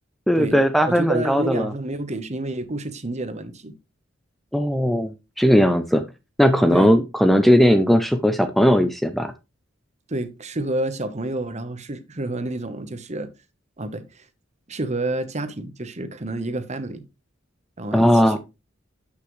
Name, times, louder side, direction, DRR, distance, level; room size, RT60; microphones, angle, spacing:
voice 1, 0.3-1.7 4.5-6.0 6.4-9.3 17.9-18.4, equal, ahead, 0.5 m, -18 dB
voice 2, 0.9-3.7 6.7-6.9 10.1-13.3 13.8-14.3 14.7-17.1 17.8-18.4, right 2 dB, 35° right, 1.0 m, -29 dB
12.5 x 5.7 x 3.2 m
head